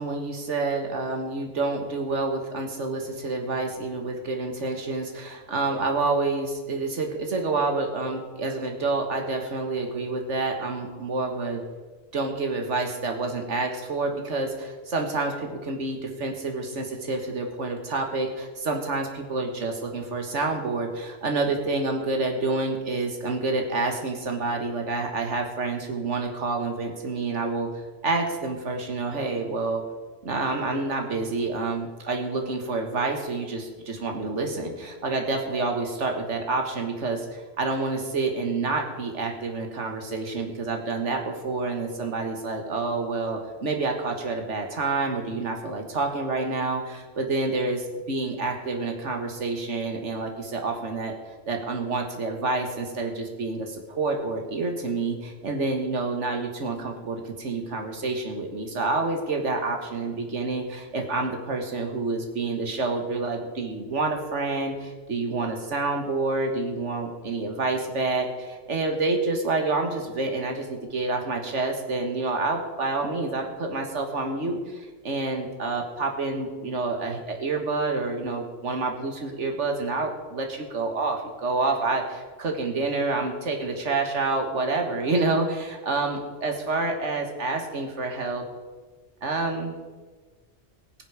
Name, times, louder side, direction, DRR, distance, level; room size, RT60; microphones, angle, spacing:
voice 1, 0.0-11.6 12.1-27.7 28.0-29.8 30.2-51.1 51.5-88.4 89.2-89.8, right 3 dB, 80° right, 3 dB, 1.8 m, -28 dB
19.5 x 7.6 x 4.9 m, 1.3 s
omnidirectional pair, 1.2 m